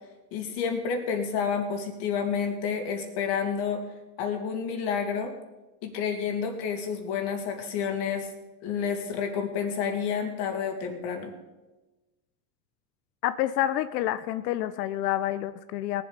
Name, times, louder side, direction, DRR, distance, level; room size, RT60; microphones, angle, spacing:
voice 1, 0.3-3.8 4.2-5.3 5.8-8.3 8.6-11.3, left 6 dB, 55° left, 4 dB, 2.7 m, -29 dB
voice 2, 13.2-16.0, left 13 dB, 80° left, 12 dB, 0.7 m, -28 dB
19.0 x 7.7 x 5.2 m, 1.1 s
supercardioid pair, 120°, 48 cm